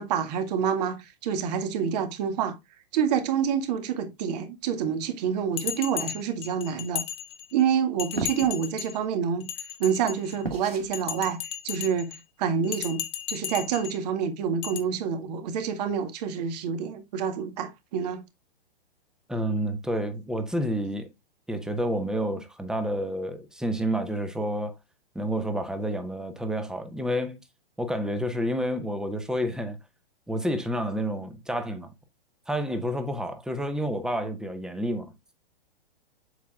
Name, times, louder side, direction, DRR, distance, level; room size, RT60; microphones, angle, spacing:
voice 1, 0.0-2.6 2.9-7.0 7.5-9.5 9.8-11.4 11.6-18.3, right 7 dB, 45° right, 1.9 m, -27 dB
Bell, 5.6-7.6 8.0-9.0 9.4-10.4 10.9-12.2 12.6-14.0 14.6-14.8, left 10 dB, 20° left, 1.1 m, -35 dB
sound 1, 8.2-8.6 10.4-10.9, right 3 dB, 90° right, 1.9 m, -32 dB
voice 2, 19.3-21.1 21.5-24.8 25.1-27.4 27.8-29.8 30.3-31.9 32.5-35.1, equal, ahead, 1.2 m, -29 dB
8.0 x 7.4 x 2.4 m
figure-of-eight pair, 115°, 29 cm